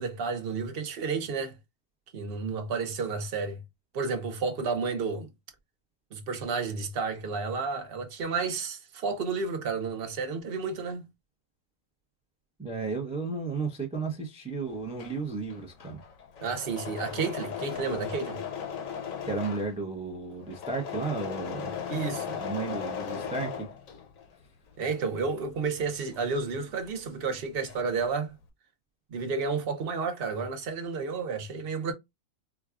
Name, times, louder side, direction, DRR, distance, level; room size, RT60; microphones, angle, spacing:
voice 1, 0.0-1.6 2.1-3.6 3.9-5.3 6.1-11.1 16.4-18.4 21.9-22.4 24.8-28.4 29.1-31.9, right 4 dB, 55° right, 0.8 m, -31 dB
voice 2, 12.6-16.0 19.3-21.7 22.4-23.7, right 4 dB, 10° right, 0.5 m, -33 dB
Engine / Mechanisms, 14.7-24.3 24.7-27.0 27.3-28.0, left 7 dB, 85° left, 1.1 m, -38 dB
4.7 x 2.3 x 2.4 m
omnidirectional pair, 1.4 m